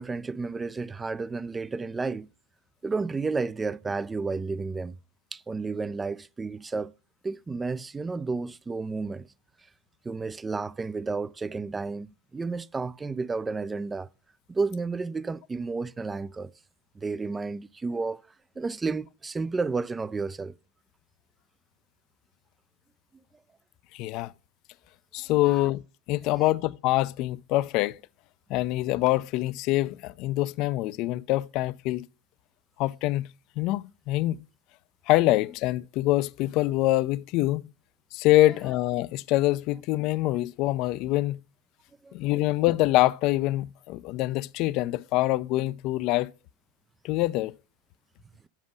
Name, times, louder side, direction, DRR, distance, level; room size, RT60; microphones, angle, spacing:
voice 1, 0.0-2.3 2.8-5.0 5.3-6.9 7.2-9.3 10.0-14.1 14.5-16.5 17.0-18.2 18.6-20.6 25.4-25.7 26.3-26.5 42.0-42.1, right 4 dB, 15° right, 0.4 m, -31 dB
voice 2, 23.9-24.3 25.1-25.8 26.1-28.0 28.5-32.1 32.8-33.3 33.6-34.4 35.1-37.6 38.1-41.4 42.1-46.3 47.0-47.6, left 17 dB, 50° left, 0.4 m, -25 dB
7.3 x 5.1 x 5.0 m
hypercardioid pair, 90°, 0 cm